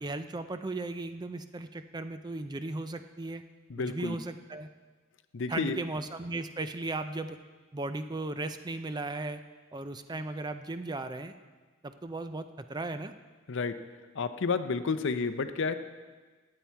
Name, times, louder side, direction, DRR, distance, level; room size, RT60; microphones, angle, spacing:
voice 1, 0.0-3.4 3.8-4.7 5.5-7.4 7.7-9.4 9.7-11.3 11.8-13.1, right 2 dB, 20° right, 10 dB, 0.4 m, -36 dB
voice 2, 3.7-4.2 5.3-5.8 13.5-13.7 14.2-15.7, left 4 dB, 60° left, 10 dB, 0.6 m, -30 dB
15.5 x 8.9 x 4.5 m, 1.4 s
head